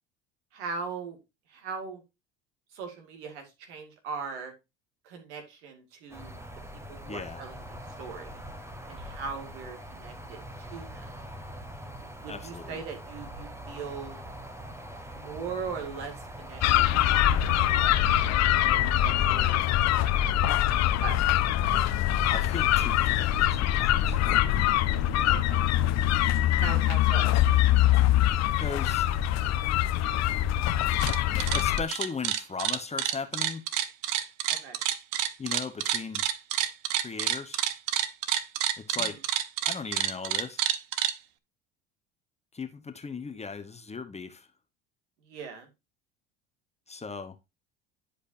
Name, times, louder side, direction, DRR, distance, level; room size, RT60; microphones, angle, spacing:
voice 1, 0.5-1.2 1.5-2.0 2.7-4.5 5.0-6.4 6.9-8.4 8.9-11.1 12.1-14.2 15.1-17.3 17.7-21.5 25.3-25.7 26.5-27.3 34.5-34.8 38.9-39.2 45.2-45.7, right 5 dB, 80° right, 2.2 m, -40 dB
sound 1, 6.1-17.9, equal, 10° right, 1.1 m, -43 dB
voice 2, 7.1-7.4 12.3-12.8 22.3-24.2 28.6-29.2 31.3-33.6 35.4-36.2 37.0-37.6 38.8-39.2 39.6-40.6 42.5-44.5 46.9-47.4, left 5 dB, 20° left, 0.9 m, -37 dB
sound 2, 16.6-31.8, left 12 dB, 50° left, 0.7 m, -24 dB
sound 3, 30.8-31.2 31.4-41.1, right 12 dB, 65° right, 0.8 m, -28 dB
10.5 x 5.0 x 2.6 m
hypercardioid pair, 75°, 34 cm